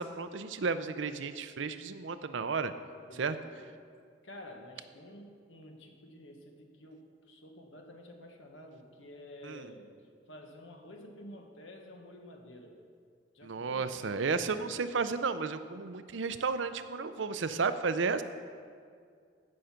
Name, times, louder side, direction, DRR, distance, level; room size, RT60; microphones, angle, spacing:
voice 1, 0.0-2.7 3.1-3.4 9.4-9.7 13.4-18.2, right 4 dB, 75° right, 11 dB, 0.6 m, -33 dB
voice 2, 3.1-3.7 4.2-9.9 10.3-12.8 13.3-13.9, left 1 dB, 80° left, 3 dB, 1.5 m, -50 dB
16.0 x 6.4 x 5.8 m, 2.2 s
head